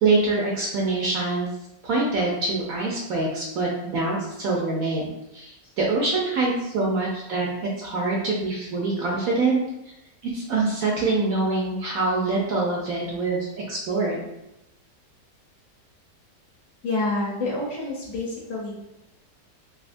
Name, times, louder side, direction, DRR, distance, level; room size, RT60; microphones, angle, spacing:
voice 1, 0.0-1.5 1.8-5.1 5.3-9.6 10.3-14.2, right 3 dB, 70° right, -3 dB, 0.9 m, -25 dB
voice 2, 16.8-18.7, left 2 dB, 60° left, -5 dB, 1.0 m, -28 dB
3.5 x 2.6 x 2.5 m, 0.88 s
omnidirectional pair, 1.9 m